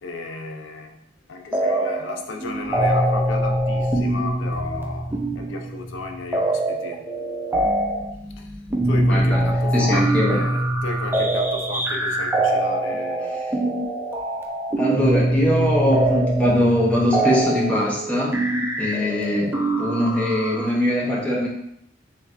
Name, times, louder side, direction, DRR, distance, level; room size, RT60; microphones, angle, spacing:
voice 1, 0.0-7.1 8.4-8.5 8.8-13.4 19.5-19.6, left 3 dB, 80° left, 4 dB, 0.4 m, -34 dB
sound 1, 1.5-2.1 2.4-20.7, right 1 dB, 10° right, 0.3 m, -23 dB
voice 2, 9.1-9.4 9.7-10.4 14.8-18.4 18.8-21.5, equal, 5° left, -5 dB, 0.7 m, -22 dB
3.2 x 3.1 x 2.5 m, 0.75 s
head